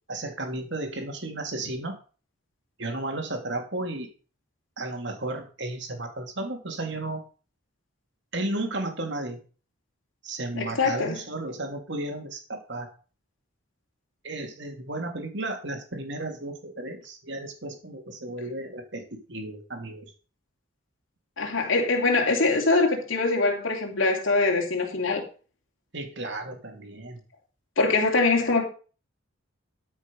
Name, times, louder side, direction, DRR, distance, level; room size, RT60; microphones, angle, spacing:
voice 1, 0.1-2.0 2.8-4.1 4.8-7.2 8.3-9.4 10.2-12.9 14.2-20.1 25.9-27.2, right 2 dB, 55° right, 2.7 m, -33 dB
voice 2, 10.6-11.1 21.4-25.2 27.8-28.6, left 3 dB, 70° left, 2.8 m, -23 dB
13.0 x 6.3 x 5.4 m
head